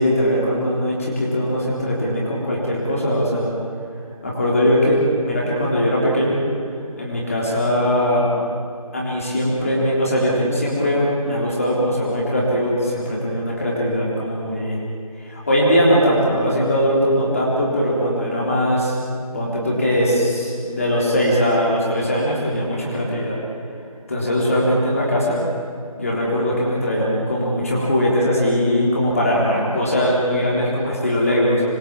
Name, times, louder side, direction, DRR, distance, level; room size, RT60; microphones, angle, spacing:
voice 1, 0.0-3.5 4.2-6.4 7.0-8.3 8.9-14.8 15.2-19.0 19.3-23.4 24.1-25.4 26.0-31.6, equal, 25° left, -5 dB, 3.7 m, -20 dB
27.0 x 22.0 x 7.4 m, 2.2 s
figure-of-eight pair, 175°, 19 cm